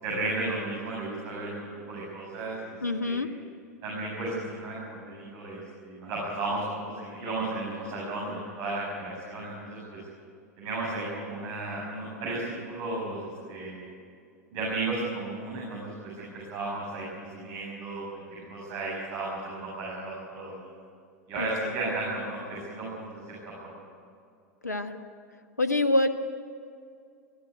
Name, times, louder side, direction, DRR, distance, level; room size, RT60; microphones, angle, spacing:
voice 1, 0.0-2.8 3.0-3.2 3.8-10.0 10.6-13.9 14.5-20.7 21.3-23.2 23.6-23.8, right 2 dB, 45° right, -4 dB, 7.3 m, -34 dB
voice 2, 2.8-3.3 21.4-21.7 24.6-25.0 25.6-26.1, left 2 dB, 85° left, 9 dB, 1.4 m, -26 dB
22.0 x 15.5 x 9.3 m, 2.4 s
figure-of-eight pair, 90°, 9 cm